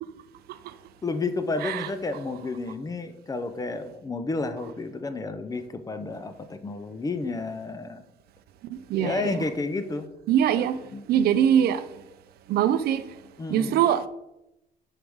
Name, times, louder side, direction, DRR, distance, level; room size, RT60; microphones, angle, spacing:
voice 1, 1.0-8.0 8.9-10.1 10.9-11.0 13.4-13.8, left 3 dB, 20° left, 0.7 m, -31 dB
voice 2, 8.7-9.3 10.3-10.8 11.1-11.8 12.5-13.1 13.5-14.0, right 9 dB, 65° right, 0.5 m, -22 dB
5.0 x 4.9 x 6.2 m
cardioid pair, 110°, 17 cm